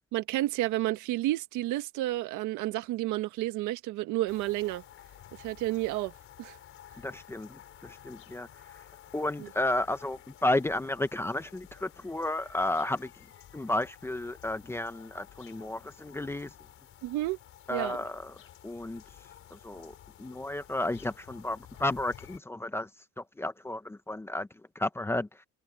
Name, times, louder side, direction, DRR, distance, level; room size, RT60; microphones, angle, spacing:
voice 1, 0.1-4.8 5.4-6.1 6.4-6.6 9.4-9.5 17.0-17.4 17.7-18.0, right 16 dB, 75° right, 1.7 m, -31 dB
sound 1, 4.3-22.4, left 11 dB, 45° left, 5.1 m, -53 dB
voice 2, 7.0-8.5 9.1-13.1 13.5-16.5 17.7-18.4 18.6-19.0 19.5-22.9 23.2-24.5 24.8-25.3, left 1 dB, 10° left, 0.8 m, -32 dB
cardioid pair, 160°, 31 cm